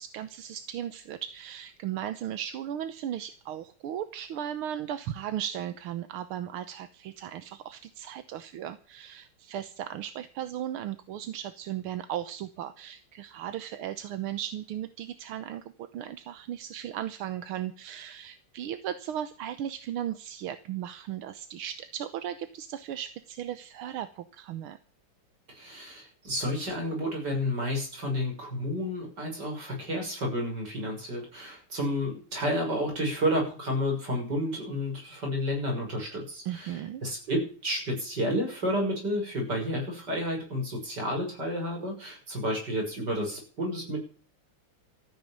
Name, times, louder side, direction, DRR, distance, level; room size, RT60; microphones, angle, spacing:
voice 1, 0.0-24.8 36.5-37.0, right 10 dB, 80° right, 11 dB, 1.8 m, -36 dB
voice 2, 25.6-36.7 37.0-44.0, equal, 50° right, 1 dB, 6.9 m, -31 dB
14.0 x 9.7 x 8.7 m, 0.41 s
omnidirectional pair, 2.4 m